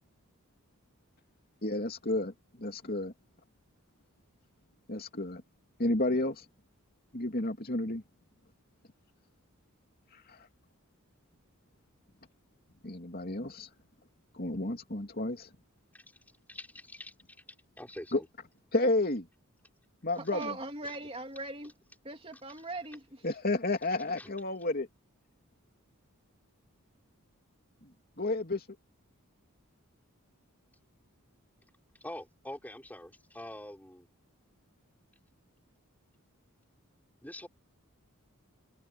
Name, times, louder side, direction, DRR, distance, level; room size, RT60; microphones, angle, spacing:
voice 1, 1.6-2.3 2.6-3.1 4.9-5.4 5.8-6.4 7.1-8.0 12.8-13.7 14.3-15.5 18.1-18.2 18.7-19.3 20.0-20.5 23.2-24.9 28.2-28.6, left 2 dB, 45° left, 2.9 m, -31 dB
voice 2, 16.5-17.1 17.8-18.3 20.8-20.9 22.5-22.6 24.2-24.3 32.0-34.1 37.2-37.5, left 1 dB, 5° left, 4.8 m, -45 dB
voice 3, 20.2-21.7 22.0-23.2, right 2 dB, 25° right, 2.9 m, -40 dB
head